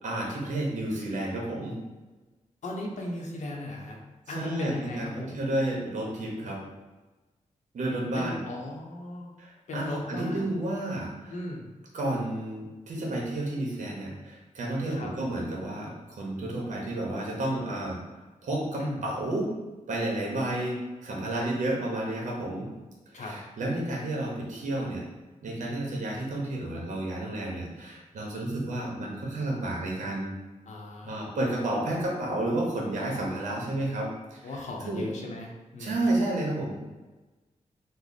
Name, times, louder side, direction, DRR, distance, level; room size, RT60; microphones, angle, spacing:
voice 1, 0.0-1.8 4.3-6.6 7.7-8.4 9.4-11.4 11.9-18.0 18.4-19.5 19.9-22.7 23.1-25.0 25.4-30.3 31.0-35.0 35.8-36.7, right 1 dB, 70° right, -2 dB, 0.8 m, -31 dB
voice 2, 2.6-4.0 4.3-5.3 8.1-9.3 9.7-10.5 11.3-11.6 14.9-15.1 18.7-19.0 23.1-23.3 30.6-31.3 34.4-36.0, left 1 dB, 65° left, 0 dB, 0.6 m, -36 dB
3.2 x 2.0 x 3.9 m, 1.2 s
wide cardioid pair, 140°, 13 cm